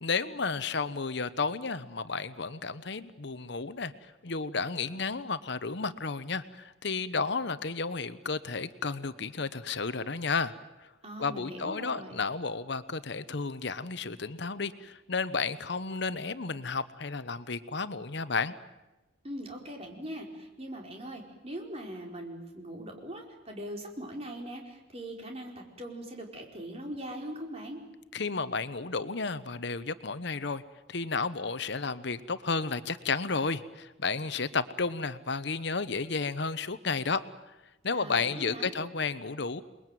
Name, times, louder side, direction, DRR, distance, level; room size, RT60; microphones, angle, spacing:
voice 1, 0.0-10.9 11.2-18.5 28.1-30.6 30.9-37.6 37.8-39.6, left 4 dB, 60° left, 13 dB, 1.0 m, -32 dB
voice 2, 11.0-12.2 19.2-27.8 37.9-38.7, right 1 dB, 30° right, 1 dB, 4.8 m, -41 dB
29.0 x 21.0 x 9.2 m, 1.1 s
head